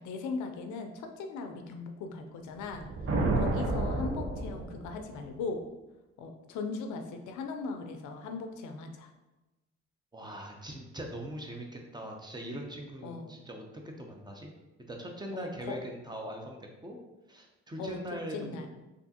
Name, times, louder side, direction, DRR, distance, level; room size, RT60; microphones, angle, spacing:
voice 1, 0.0-2.8 3.4-5.6 6.2-9.1 13.0-13.3 15.3-15.8 17.8-18.0 18.3-18.7, left 4 dB, 75° left, 5 dB, 0.5 m, -38 dB
sound 1, 2.6-5.1, right 2 dB, 45° right, 0.7 m, -30 dB
voice 2, 10.1-14.5 14.9-17.0 17.3-18.7, right 1 dB, 15° right, 1 dB, 0.6 m, -41 dB
3.4 x 2.6 x 2.7 m, 1.1 s
supercardioid pair, 70°, 30 cm